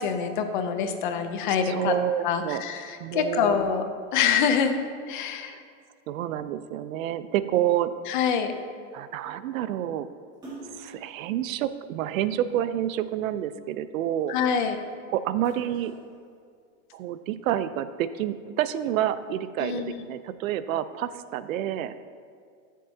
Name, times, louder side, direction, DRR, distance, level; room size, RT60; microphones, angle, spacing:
voice 1, 0.0-1.9 2.2-3.8 4.1-4.7 5.1-5.6 8.1-8.5 14.3-14.8 19.6-19.9, left 7 dB, 40° left, 7 dB, 0.6 m, -25 dB
voice 2, 1.6-2.6 3.0-3.5 5.5-5.6 6.1-7.9 8.9-10.1 10.8-14.3 15.1-15.9 16.9-21.9, right 11 dB, 85° right, 13 dB, 0.6 m, -28 dB
Splash splatter, 10.3-12.9 13.4-14.8 15.1-16.9, right 2 dB, 10° right, 2.0 m, -47 dB
14.0 x 7.4 x 2.8 m, 2.2 s
supercardioid pair, 175°, 40 cm